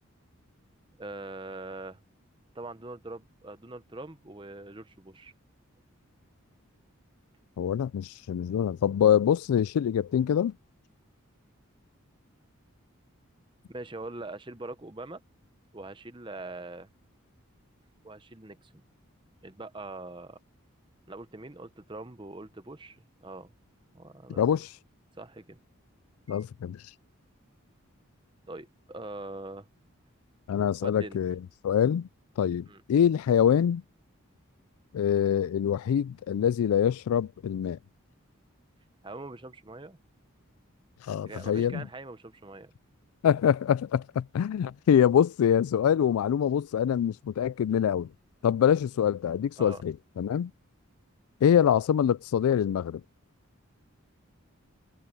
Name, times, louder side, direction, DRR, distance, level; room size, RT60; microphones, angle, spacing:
voice 1, 1.0-2.0 2.5-5.3 13.7-15.2 15.7-16.9 18.0-18.8 19.4-20.4 21.1-23.5 23.9-24.4 25.2-25.6 26.3-26.4 28.5-29.7 30.8-31.2 32.7-32.8 39.0-40.0 41.2-42.7 49.6-49.8, right 2 dB, 20° right, 0.9 m, -42 dB
voice 2, 7.6-10.5 24.4-24.7 26.3-26.8 30.5-32.1 32.4-33.8 34.9-37.8 41.0-41.8 43.2-48.1 48.4-50.5 51.4-53.0, left 9 dB, 90° left, 0.3 m, -25 dB
head